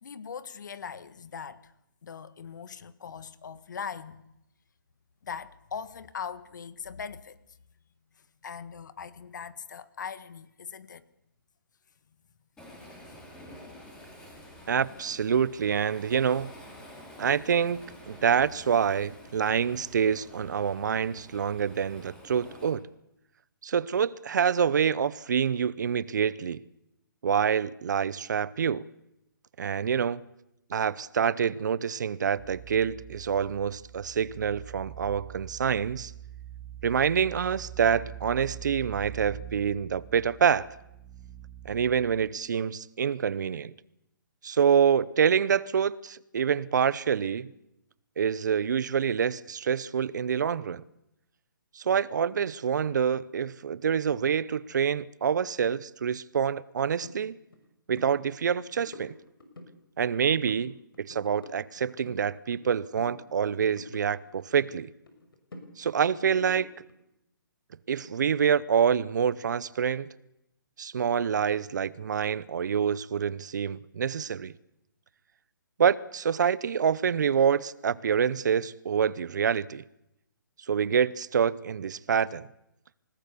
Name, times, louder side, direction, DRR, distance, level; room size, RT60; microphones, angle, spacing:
voice 1, 0.0-1.7 2.0-4.2 5.2-7.4 8.4-11.0 13.1-13.2, left 6 dB, 55° left, 1.6 m, -40 dB
Waves surf, 12.6-22.7, left 1 dB, 5° left, 5.2 m, -49 dB
voice 2, 14.7-16.5 17.2-22.9 23.6-26.6 27.2-28.9 29.6-30.3 30.7-36.1 36.8-40.7 41.6-43.7 44.4-47.5 48.2-50.8 51.7-57.4 57.9-59.1 60.0-64.9 65.8-66.7 67.9-70.1 70.8-74.5 75.8-79.8 80.7-82.5, right 7 dB, 55° right, 0.8 m, -26 dB
sound 1, 32.4-42.3, right 11 dB, 10° right, 2.0 m, -44 dB
sound 2, 57.0-57.2 57.5-57.7 57.9-58.1 58.5-59.7 60.0-60.7 60.9-62.7 63.0-64.7 65.1-66.9, left 2 dB, 85° left, 6.0 m, -47 dB
29.0 x 18.5 x 7.0 m
hypercardioid pair, 160°, 12 cm